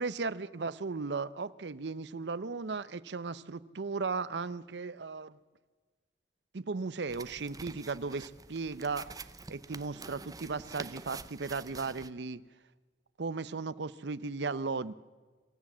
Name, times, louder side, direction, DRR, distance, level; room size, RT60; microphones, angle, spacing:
voice 1, 0.0-5.4 6.5-9.1 9.5-12.4 13.2-14.9, right 4 dB, 75° right, 17 dB, 0.7 m, -36 dB
sound 1, 7.1-12.1, right 4 dB, 20° right, 0.6 m, -47 dB
26.0 x 14.0 x 7.4 m, 1.4 s
head